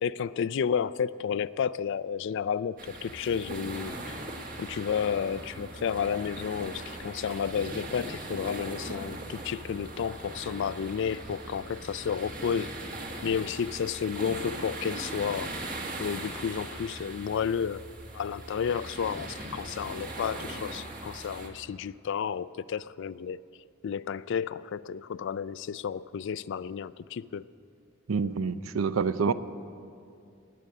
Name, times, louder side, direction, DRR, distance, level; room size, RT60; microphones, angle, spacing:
voice 1, 0.0-4.2 4.6-12.7 13.2-15.6 16.0-17.9 18.1-23.4 23.8-27.5, left 7 dB, 60° left, 18 dB, 0.3 m, -31 dB
sound 1, 2.8-21.5, right 2 dB, 45° right, 1.6 m, -40 dB
voice 2, 28.1-29.3, right 5 dB, 90° right, 14 dB, 0.5 m, -27 dB
20.0 x 8.6 x 6.6 m, 2.5 s
head